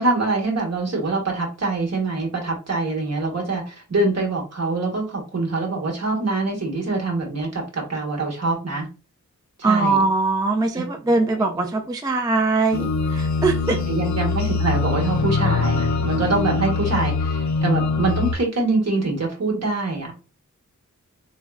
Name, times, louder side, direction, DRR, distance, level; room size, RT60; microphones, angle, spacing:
voice 1, 0.0-8.9 9.6-10.0 10.7-10.8 11.2-11.5 13.7-20.3, right 3 dB, 50° right, 0 dB, 1.1 m, -24 dB
voice 2, 9.6-13.8, right 3 dB, 15° right, 4 dB, 0.3 m, -21 dB
sound 1, 12.7-18.3, left 4 dB, 60° left, 0.5 m, -23 dB
3.5 x 2.1 x 2.3 m, 0.32 s
wide cardioid pair, 60°, 32 cm